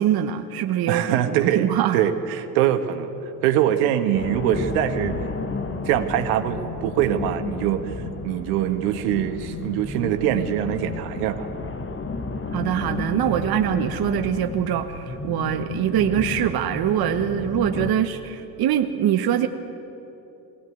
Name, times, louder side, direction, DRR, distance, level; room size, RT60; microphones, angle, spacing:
voice 1, 0.0-2.0 12.5-19.5, right 10 dB, 50° right, 7 dB, 1.3 m, -23 dB
voice 2, 0.9-1.7 1.9-3.1 3.4-5.3 5.9-7.9 8.2-11.5, right 11 dB, 75° right, 7 dB, 1.6 m, -23 dB
sound 1, 4.1-17.9, left 3 dB, 25° left, 1.7 m, -32 dB
21.5 x 18.0 x 9.2 m, 3.0 s
hypercardioid pair, 70°, 47 cm